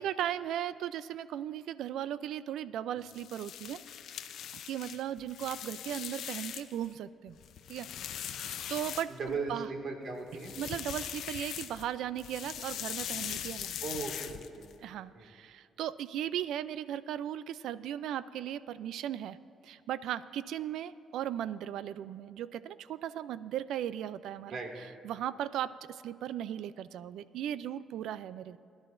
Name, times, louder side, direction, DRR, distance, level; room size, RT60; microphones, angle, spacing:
voice 1, 0.0-3.8 4.6-7.4 7.7-7.9 8.2-9.7 10.6-13.7 14.8-19.4 19.6-24.6 25.0-28.6, right 11 dB, 80° right, 16 dB, 0.3 m, -37 dB
sound 1, 3.0-6.9 7.3-9.5 10.3-11.9 12.2-14.7, left 10 dB, 75° left, 0.5 m, -41 dB
voice 2, 9.1-10.5 13.8-14.7 15.2-15.3 24.5-24.7, right 4 dB, 60° right, 2 dB, 2.0 m, -38 dB
21.5 x 11.0 x 2.6 m, 2.3 s
cardioid pair, 90°, 0 cm